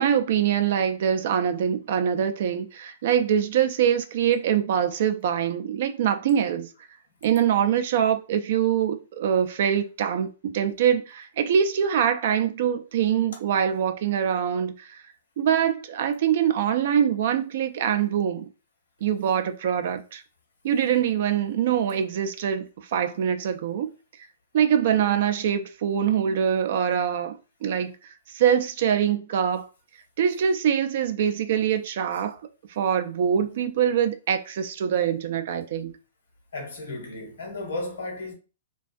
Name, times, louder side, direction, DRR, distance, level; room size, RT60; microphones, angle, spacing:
voice 1, 0.0-6.7 7.2-15.0 15.4-18.5 19.0-20.2 20.6-23.9 24.5-27.9 28.3-29.7 30.2-32.4 32.8-36.0, right 8 dB, 60° right, 0.4 m, -24 dB
voice 2, 36.5-38.3, left 2 dB, 80° left, 1.1 m, -34 dB
2.4 x 2.3 x 2.5 m
hypercardioid pair, 125°, 0 cm